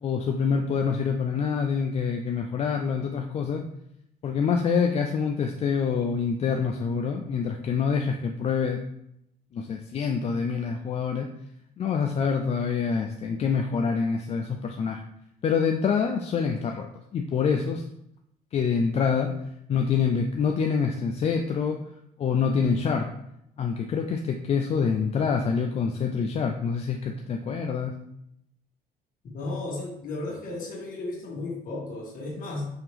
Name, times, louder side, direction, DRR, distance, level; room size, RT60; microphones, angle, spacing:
voice 1, 0.0-3.6 4.2-8.8 9.5-11.3 11.8-15.0 15.4-17.8 18.5-19.3 19.7-21.8 22.2-23.1 23.6-27.9, left 6 dB, 40° left, 3 dB, 0.4 m, -26 dB
voice 2, 29.3-32.7, left 2 dB, 55° left, -2 dB, 1.7 m, -34 dB
5.4 x 2.9 x 3.3 m, 0.78 s
cardioid pair, 110°, 17 cm